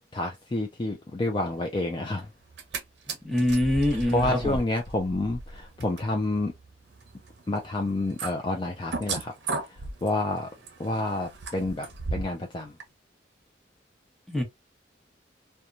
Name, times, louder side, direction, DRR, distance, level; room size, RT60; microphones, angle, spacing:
voice 1, 0.1-2.3 4.1-6.5 7.5-9.3 9.7-10.5 10.8-11.9 12.1-12.8, left 2 dB, 25° left, 0.4 m, -29 dB
sound 1, 2.4-2.8 3.1-12.4 12.8-12.9, right 3 dB, 65° right, 0.7 m, -36 dB
voice 2, 3.2-4.6 14.3-14.4, left 1 dB, ahead, 0.9 m, -24 dB
2.9 x 2.2 x 2.4 m
head